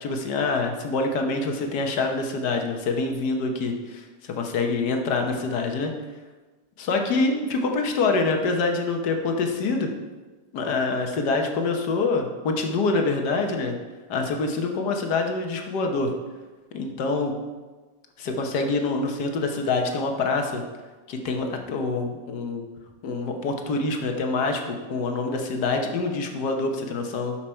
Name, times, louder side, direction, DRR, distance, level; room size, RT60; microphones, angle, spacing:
voice 1, 0.0-4.0 4.4-5.9 6.8-9.9 10.5-13.8 14.1-16.1 16.7-17.3 18.2-20.6 21.1-22.6 23.0-27.4, left 3 dB, 75° left, 4 dB, 1.7 m, -25 dB
12.0 x 5.9 x 4.4 m, 1.3 s
omnidirectional pair, 1.8 m